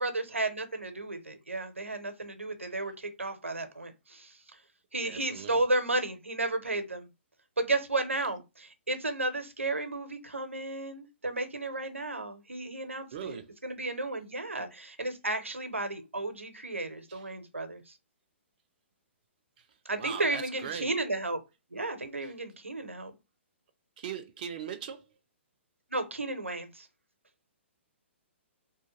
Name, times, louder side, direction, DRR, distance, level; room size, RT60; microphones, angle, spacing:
voice 1, 0.0-4.3 4.9-7.1 7.6-17.9 19.9-21.4 21.7-23.1 25.9-26.9, right 2 dB, 80° right, 0.6 m, -33 dB
voice 2, 5.0-5.6 13.1-13.5 17.1-17.3 19.6-19.7 20.0-20.9 22.2-22.3 24.0-25.1, right 8 dB, 40° right, 0.3 m, -40 dB
2.7 x 2.1 x 2.9 m
figure-of-eight pair, 125°, 7 cm